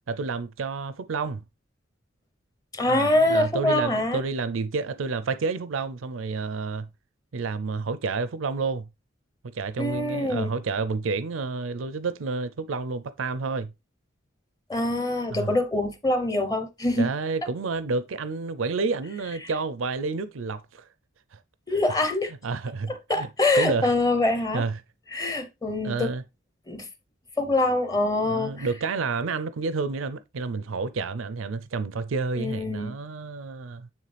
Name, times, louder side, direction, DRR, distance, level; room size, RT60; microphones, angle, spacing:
voice 1, 0.1-1.4 2.9-6.9 7.3-8.9 9.5-13.7 15.3-15.5 17.0-20.9 21.3-21.4 22.4-23.3 23.5-23.9 24.5-24.7 25.8-26.2 28.2-33.9, right 4 dB, 85° right, 0.5 m, -30 dB
voice 2, 2.7-4.2 9.8-10.5 14.7-17.1 21.7-22.3 23.1-24.6 25.1-26.1 26.7-26.9 27.4-28.7 32.4-32.9, left 2 dB, 20° left, 0.8 m, -24 dB
9.1 x 3.6 x 3.3 m
head